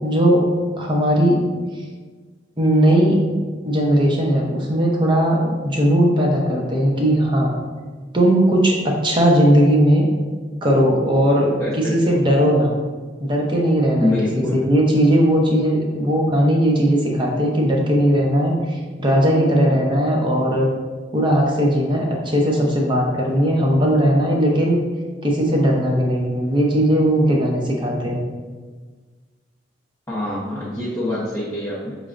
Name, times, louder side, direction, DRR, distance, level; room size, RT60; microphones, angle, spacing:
voice 1, 0.0-0.5 0.8-1.4 2.6-3.2 3.6-7.5 8.1-10.1 10.6-11.5 11.7-12.7 13.2-20.7 21.1-24.8 25.2-28.2, equal, 25° right, -1 dB, 0.7 m, -18 dB
voice 2, 11.6-12.2 14.0-14.6 30.1-32.0, left 1 dB, 15° left, -7 dB, 0.6 m, -25 dB
5.9 x 3.2 x 2.5 m, 1.4 s
head